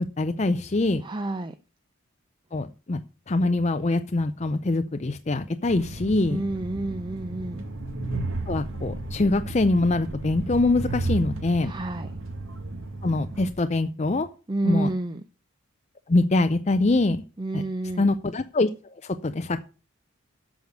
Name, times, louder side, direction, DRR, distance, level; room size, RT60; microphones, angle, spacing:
voice 1, 0.2-1.0 2.5-3.0 3.3-6.4 8.5-11.7 13.0-14.3 14.6-14.9 16.1-17.2 17.5-17.6 18.0-19.7, left 2 dB, 30° left, 9 dB, 0.5 m, -24 dB
voice 2, 1.0-1.5 6.3-7.7 11.6-12.1 14.5-15.2 17.4-18.1, right 2 dB, 20° right, 10 dB, 0.5 m, -29 dB
Train, 5.7-13.5, right 2 dB, 65° right, 1.8 m, -33 dB
8.3 x 6.4 x 8.0 m, 0.35 s
head